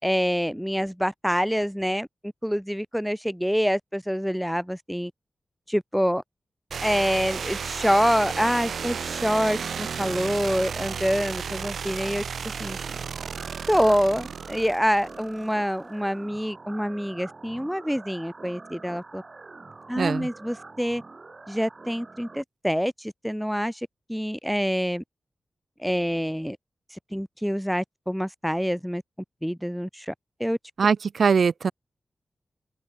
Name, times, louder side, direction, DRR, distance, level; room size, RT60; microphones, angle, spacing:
voice 1, 0.0-5.1 5.7-6.2 6.8-12.8 13.7-19.2 19.9-21.0 21.5-25.0 25.8-26.6 27.1-29.0 29.4-30.1 30.4-30.6, equal, ahead, 4.3 m, -26 dB
sound 1, 6.7-15.4, right 6 dB, 85° right, 1.5 m, -33 dB
sound 2, 12.4-22.4, right 3 dB, 35° right, 8.0 m, -45 dB
voice 2, 20.0-20.3 30.8-31.7, right 6 dB, 70° right, 0.5 m, -22 dB
wide cardioid pair, 95°, 0 cm